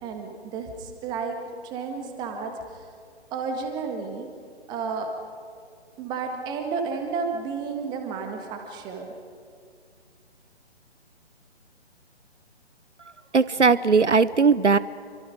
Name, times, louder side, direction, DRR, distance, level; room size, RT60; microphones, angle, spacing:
voice 1, 0.0-1.4 1.6-2.9 3.3-4.3 4.7-5.1 6.0-9.1, right 5 dB, 10° right, 4 dB, 1.7 m, -32 dB
voice 2, 13.3-14.8, right 4 dB, 90° right, 18 dB, 0.8 m, -18 dB
28.0 x 24.0 x 5.1 m, 2.2 s
figure-of-eight pair, 140°, 34 cm